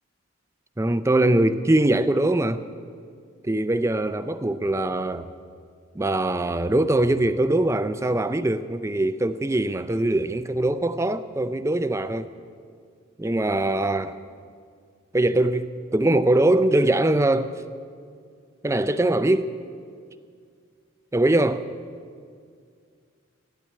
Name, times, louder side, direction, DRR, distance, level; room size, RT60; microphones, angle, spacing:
voice 1, 0.8-2.6 3.4-5.3 5.9-12.3 13.2-14.2 15.1-17.6 18.6-19.6 21.1-21.7, right 1 dB, 15° right, 0.4 m, -22 dB
15.5 x 10.0 x 8.3 m
head